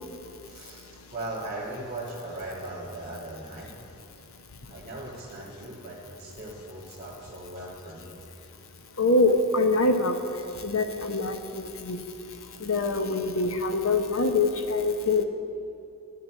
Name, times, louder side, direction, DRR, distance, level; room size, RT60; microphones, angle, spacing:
voice 1, 0.4-0.9 1.1-3.7 4.7-8.2 8.5-8.6, right 2 dB, 30° right, -10 dB, 1.6 m, -38 dB
voice 2, 9.0-10.2 10.6-12.0 12.6-15.2, left 2 dB, 65° left, 6 dB, 0.8 m, -24 dB
9.6 x 9.4 x 5.6 m, 2.6 s
head